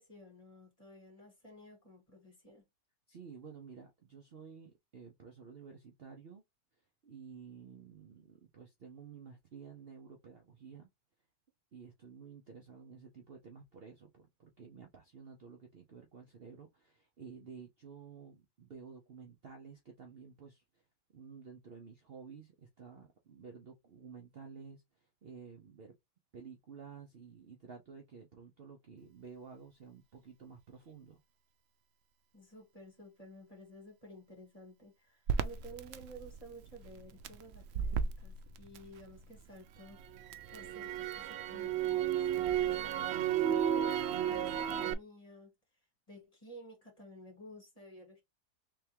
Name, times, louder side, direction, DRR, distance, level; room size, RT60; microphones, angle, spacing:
voice 1, 0.0-2.6 32.3-40.0 40.5-45.5 46.1-48.2, equal, 25° left, 2.1 m, -53 dB
voice 2, 3.1-6.4 7.0-10.9 11.7-20.8 21.1-25.9 26.3-31.2, right 6 dB, 50° right, 0.9 m, -52 dB
Crackle, 35.3-39.4 39.8-44.9, right 9 dB, 75° right, 0.6 m, -33 dB
3.5 x 3.4 x 2.9 m
omnidirectional pair, 1.6 m